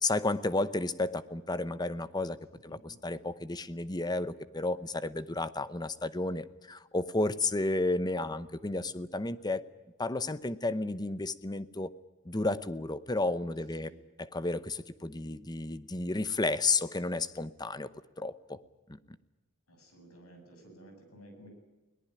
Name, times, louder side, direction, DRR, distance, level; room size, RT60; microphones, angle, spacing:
voice 1, 0.0-2.4 2.6-9.6 10.0-11.9 12.2-13.9 14.2-17.9 18.2-18.6 18.9-19.0, left 2 dB, 20° left, 15 dB, 0.8 m, -32 dB
voice 2, 19.7-21.5, right 1 dB, 75° left, 5 dB, 8.0 m, -54 dB
22.0 x 19.0 x 9.9 m, 1.1 s
head